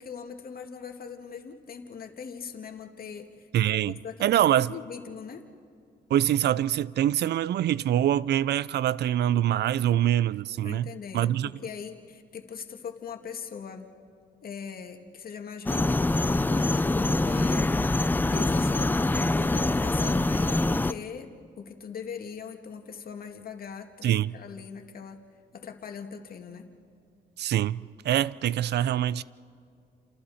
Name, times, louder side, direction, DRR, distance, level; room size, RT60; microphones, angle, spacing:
voice 1, 0.0-5.5 10.6-13.9 14.4-17.7 18.3-25.2 25.5-26.7, left 6 dB, 55° left, 2.0 m, -41 dB
voice 2, 3.5-4.7 6.1-11.5 24.0-24.3 27.4-29.2, right 11 dB, 65° right, 0.5 m, -25 dB
sound 1, 15.7-20.9, left 2 dB, 10° left, 0.5 m, -24 dB
29.5 x 27.5 x 4.2 m
cardioid pair, 90°, 18 cm